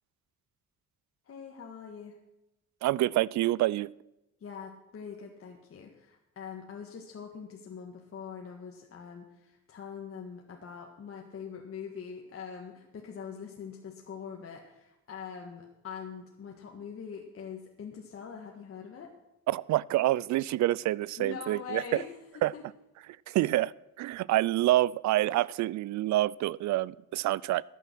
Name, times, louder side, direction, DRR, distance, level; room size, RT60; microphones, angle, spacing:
voice 1, 1.3-2.1 4.4-19.1 21.2-22.1 22.5-22.6, left 6 dB, 50° left, 1 dB, 1.7 m, -43 dB
voice 2, 2.8-3.9 19.5-22.0 22.4-22.5 23.3-27.6, right 15 dB, 70° right, 24 dB, 0.5 m, -27 dB
14.0 x 9.2 x 6.1 m, 0.91 s
cardioid pair, 105°, 29 cm